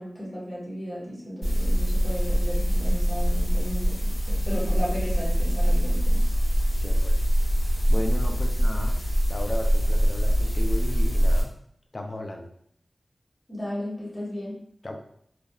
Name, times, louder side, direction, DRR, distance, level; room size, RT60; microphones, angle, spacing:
voice 1, 0.0-6.2 13.5-14.6, equal, 25° left, -7 dB, 1.2 m, -34 dB
sound 1, 1.4-11.4, equal, 85° left, 1.5 m, -23 dB
voice 2, 6.8-7.2 7.6-9.0 9.3-11.5 11.9-12.5 14.8-15.0, left 1 dB, 45° left, 3 dB, 0.4 m, -35 dB
3.0 x 2.2 x 2.2 m, 0.67 s
wide cardioid pair, 75°, 0 cm